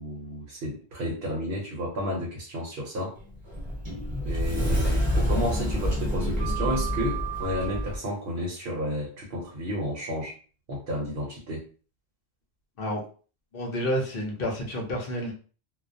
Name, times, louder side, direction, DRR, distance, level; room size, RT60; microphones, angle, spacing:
voice 1, 0.0-3.2 4.2-10.3 10.7-11.6, equal, 65° right, -2 dB, 0.9 m, -32 dB
Sliding door, 3.2-8.0, equal, 30° right, 0.7 m, -27 dB
sound 1, 4.6-8.8, right 4 dB, 45° right, 0.3 m, -44 dB
voice 2, 13.5-15.3, equal, 60° left, 1 dB, 0.8 m, -29 dB
2.3 x 2.1 x 2.5 m, 0.39 s
omnidirectional pair, 1.1 m